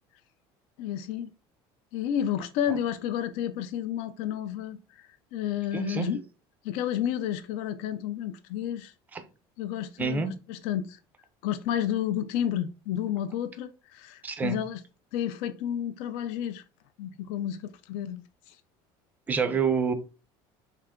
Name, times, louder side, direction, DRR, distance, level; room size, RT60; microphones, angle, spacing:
voice 1, 0.8-1.3 1.9-6.2 6.6-8.9 9.6-11.0 11.4-14.8 15.1-16.6 17.0-17.6 17.9-18.6, left 10 dB, 65° left, 0.4 m, -31 dB
voice 2, 5.7-6.1 9.1-9.2 10.0-10.3 14.2-14.6 19.3-19.9, right 6 dB, 15° right, 0.4 m, -27 dB
3.4 x 2.8 x 3.6 m
cardioid pair, 175°, 11 cm